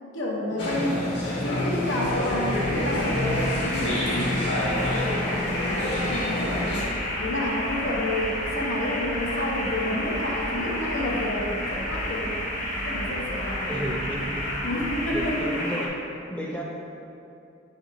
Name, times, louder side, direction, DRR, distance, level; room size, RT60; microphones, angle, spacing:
voice 1, 0.0-1.0 1.4-4.5 4.8-6.9 7.2-12.5 12.8-13.8 14.6-15.6, left 1 dB, 85° left, -3 dB, 1.0 m, -30 dB
voice 2, 0.5-1.0 13.7-14.7 15.1-15.9 16.3-16.6, right 1 dB, 5° left, -3 dB, 0.7 m, -33 dB
sound 1, 0.6-6.8, left 1 dB, 65° left, 1.4 m, -28 dB
sound 2, 1.9-15.9, left 1 dB, 40° left, 0.9 m, -32 dB
sound 3, 2.0-15.3, right 2 dB, 40° right, 0.3 m, -38 dB
6.3 x 5.9 x 3.1 m, 2.7 s
head